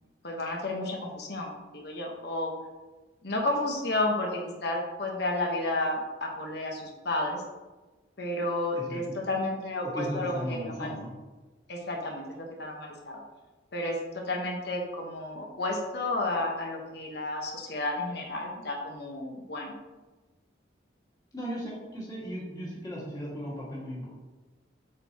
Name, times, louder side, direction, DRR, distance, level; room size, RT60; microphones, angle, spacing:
voice 1, 0.2-2.5 3.2-7.4 8.2-10.9 11.7-13.2 13.7-19.7, left 2 dB, 60° left, 1 dB, 1.2 m, -32 dB
voice 2, 8.8-9.2 9.8-11.1 21.3-24.1, equal, 20° left, -7 dB, 1.9 m, -36 dB
7.6 x 4.6 x 2.9 m, 1.2 s
head